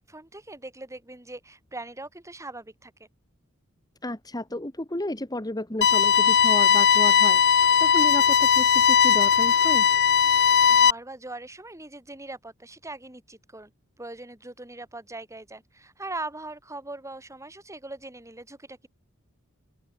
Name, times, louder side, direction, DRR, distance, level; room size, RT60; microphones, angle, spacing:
voice 1, 0.0-2.9 10.4-13.7 14.0-18.9, right 2 dB, 15° right, 4.3 m, -40 dB
voice 2, 4.0-9.9, left 1 dB, 20° left, 2.4 m, -32 dB
sound 1, 5.8-10.9, left 7 dB, 55° left, 2.2 m, -18 dB
open air
head